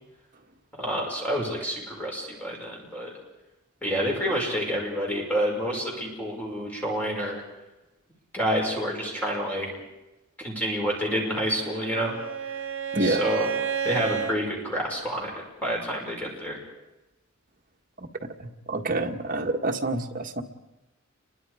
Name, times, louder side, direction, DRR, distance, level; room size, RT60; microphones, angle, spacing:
voice 1, 0.8-3.1 3.8-7.4 8.3-9.7 10.4-12.1 13.0-13.5 13.8-15.3 15.6-16.6, equal, 5° left, -2 dB, 5.9 m, -28 dB
Bowed string instrument, 11.2-14.4, right 7 dB, 60° right, 1.9 m, -31 dB
voice 2, 18.4-20.4, right 2 dB, 40° right, 3 dB, 1.7 m, -27 dB
29.5 x 23.0 x 5.0 m, 1.0 s
head